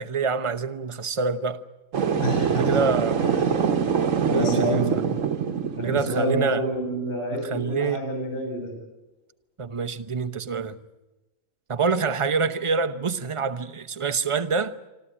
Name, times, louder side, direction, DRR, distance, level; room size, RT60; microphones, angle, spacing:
voice 1, 0.0-1.6 2.6-3.4 4.3-5.0 5.8-6.7 7.3-8.0 9.6-10.8 11.7-14.7, right 5 dB, 30° right, 0.8 m, -26 dB
sound 1, 1.9-6.2, right 6 dB, 75° right, 1.6 m, -24 dB
voice 2, 2.2-2.8 3.2-3.6 4.3-5.0 5.7-8.7, right 1 dB, 40° left, 7.7 m, -28 dB
26.0 x 14.0 x 10.0 m
omnidirectional pair, 1.4 m